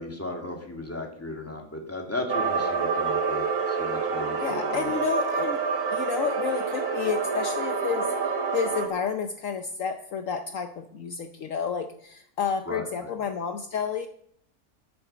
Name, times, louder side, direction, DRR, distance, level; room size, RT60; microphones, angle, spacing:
voice 1, 0.0-4.9 12.7-13.1, left 2 dB, 10° left, 1 dB, 2.3 m, -35 dB
sound 1, 2.3-8.9, right 5 dB, 90° right, 3.2 m, -27 dB
voice 2, 4.4-5.6 5.9-14.1, left 7 dB, 65° left, 7 dB, 1.1 m, -30 dB
10.5 x 8.7 x 6.9 m, 0.66 s
omnidirectional pair, 1.6 m